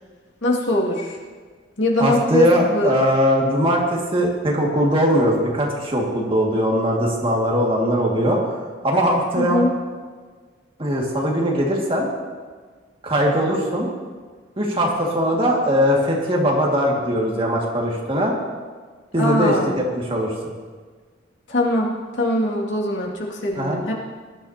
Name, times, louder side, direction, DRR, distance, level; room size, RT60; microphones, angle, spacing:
voice 1, 0.4-1.2 1.8-2.5 2.7-2.9 9.4-9.7 19.2-19.8 21.5-23.9, left 1 dB, 75° left, -2 dB, 2.3 m, -21 dB
voice 2, 2.0-8.4 8.8-9.6 10.8-12.1 13.0-13.9 14.6-18.3 19.1-20.3 23.6-23.9, equal, 30° right, -2 dB, 2.0 m, -20 dB
19.5 x 12.0 x 2.9 m, 1.5 s
head